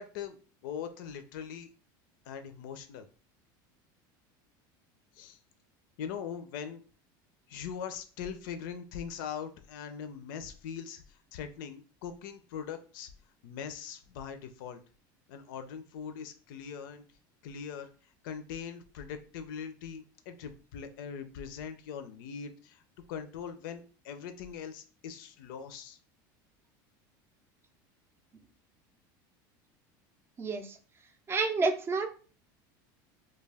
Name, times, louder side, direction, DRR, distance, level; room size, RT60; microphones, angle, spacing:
voice 1, 0.0-1.7 2.3-3.1 5.1-5.4 6.0-6.8 7.5-13.1 13.4-14.8 15.3-17.0 17.4-17.9 18.2-22.8 23.1-26.0, left 7 dB, 80° left, 9 dB, 0.4 m, -41 dB
voice 2, 30.4-30.8 31.3-32.1, right 3 dB, 20° right, 5 dB, 0.4 m, -29 dB
2.3 x 2.2 x 3.3 m, 0.37 s
supercardioid pair, 135°, 11 cm